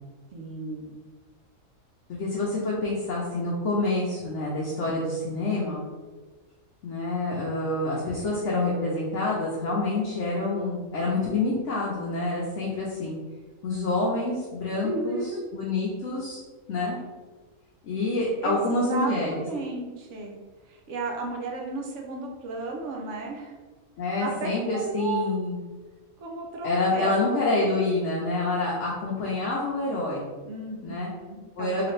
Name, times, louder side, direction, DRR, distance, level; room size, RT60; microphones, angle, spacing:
voice 1, 0.3-0.9 14.8-15.4 18.4-20.4 20.7-23.5 24.2-25.3 26.2-27.3 30.4-31.9, right 2 dB, 65° right, 0 dB, 0.9 m, -33 dB
voice 2, 2.1-5.9 6.8-13.2 13.6-16.4 16.7-17.0 17.8-19.5 24.0-25.6 26.6-30.3 30.8-31.1 31.6-31.9, left 2 dB, 65° left, -4 dB, 0.9 m, -27 dB
3.2 x 2.9 x 3.1 m, 1.3 s
omnidirectional pair, 1.5 m